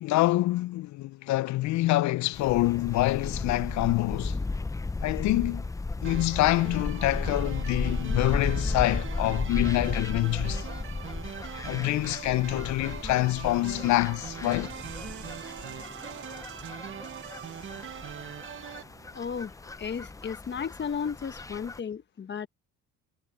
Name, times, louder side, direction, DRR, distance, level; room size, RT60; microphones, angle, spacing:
voice 1, 0.0-4.4 5.0-5.7 6.0-10.7 11.6-14.7, left 18 dB, 55° left, 0.5 m, -26 dB
sound 1, 2.3-21.8, left 3 dB, 10° left, 0.5 m, -35 dB
sound 2, 6.0-18.8, right 8 dB, 35° right, 1.2 m, -42 dB
sound 3, 14.4-19.8, right 10 dB, 55° right, 2.0 m, -51 dB
voice 2, 19.1-22.5, left 6 dB, 30° left, 1.2 m, -34 dB
supercardioid pair, 95°, 35 cm